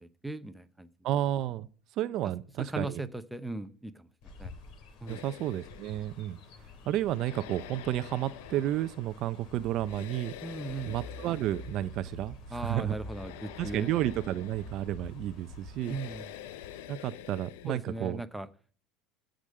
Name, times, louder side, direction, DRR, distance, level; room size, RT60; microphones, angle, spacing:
voice 1, 0.0-0.9 2.6-4.1 4.4-4.5 5.0-5.2 10.4-11.0 12.5-13.9 15.9-16.3 17.7-18.5, right 2 dB, 5° right, 11 dB, 0.9 m, -38 dB
voice 2, 1.0-1.7 2.0-3.0 5.1-6.4 6.9-10.3 10.9-13.0 13.6-16.0 16.9-18.2, right 13 dB, 50° right, 13 dB, 0.6 m, -31 dB
Chirp tweet, 4.2-16.9, left 3 dB, 55° left, 2.7 m, -52 dB
sound 1, 5.1-17.8, left 12 dB, 85° left, 0.7 m, -48 dB
sound 2, 10.7-15.7, equal, 40° left, 6.5 m, -46 dB
15.0 x 5.2 x 7.6 m, 0.41 s
supercardioid pair, 135°, 0 cm